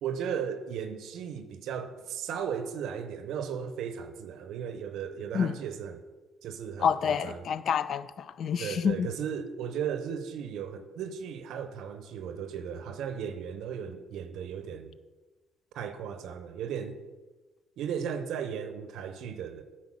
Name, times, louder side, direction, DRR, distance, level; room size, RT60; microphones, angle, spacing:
voice 1, 0.0-6.0 6.4-7.5 8.6-14.9 15.7-17.0 17.8-19.6, right 7 dB, 70° right, 0.6 m, -36 dB
voice 2, 6.8-9.1, left 7 dB, 60° left, 0.4 m, -28 dB
9.8 x 4.4 x 7.4 m
hypercardioid pair, 50°, 0 cm